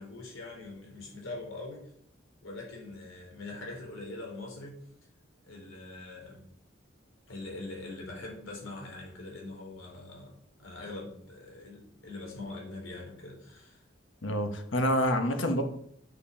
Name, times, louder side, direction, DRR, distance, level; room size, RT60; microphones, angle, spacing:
voice 1, 0.0-1.9 2.4-4.8 5.4-6.5 7.3-10.3 10.6-13.8, left 2 dB, 85° left, -2 dB, 4.3 m, -43 dB
voice 2, 14.2-15.6, equal, 70° left, 5 dB, 1.3 m, -27 dB
8.4 x 6.9 x 5.3 m, 0.67 s
head